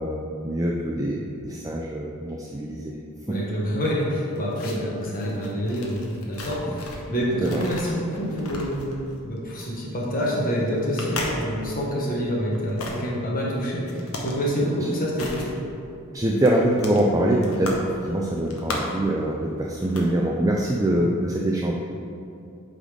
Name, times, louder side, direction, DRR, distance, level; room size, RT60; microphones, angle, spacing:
voice 1, 0.0-2.9 3.3-3.4 7.4-7.6 16.1-17.7 18.1-21.8, right 1 dB, 15° right, -2 dB, 0.4 m, -24 dB
voice 2, 3.3-6.0 6.2-8.8 9.2-15.4, equal, 40° left, -4 dB, 1.2 m, -27 dB
sound 1, 4.0-7.1 7.4-11.8 12.5-13.0 13.9-14.4 14.7-15.5 15.8-15.9 16.2-17.9 18.2-19.1 19.6-20.1 20.4-20.6, left 2 dB, 70° left, 1.1 m, -36 dB
8.4 x 4.0 x 5.0 m, 2.7 s
head